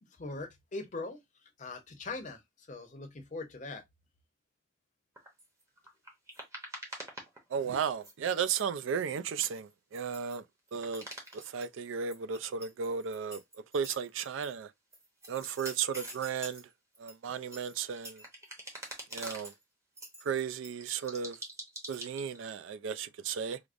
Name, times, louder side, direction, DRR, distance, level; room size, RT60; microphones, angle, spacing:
voice 1, 0.0-3.8, left 3 dB, 35° left, 0.6 m, -42 dB
sound 1, 5.2-7.8 8.0-10.4 10.7-11.7 12.0-14.5 14.9-16.6 16.9-19.6 20.0-22.4, right 1 dB, 15° right, 0.9 m, -46 dB
voice 2, 7.5-10.4 10.7-11.1 11.3-13.4 13.7-14.7 15.3-16.7 17.0-18.2 19.1-19.5 20.2-21.4 21.9-23.6, right 7 dB, 70° right, 0.3 m, -34 dB
4.8 x 2.0 x 2.4 m
head